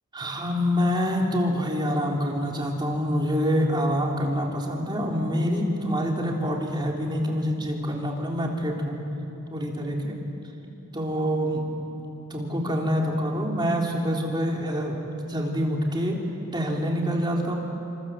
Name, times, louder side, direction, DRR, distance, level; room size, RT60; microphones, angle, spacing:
voice 1, 0.1-9.0 9.5-10.2 10.6-11.7 12.3-15.0 15.3-16.2 16.5-17.5, equal, 20° right, -1 dB, 3.6 m, -26 dB
28.5 x 26.0 x 7.6 m, 2.9 s
head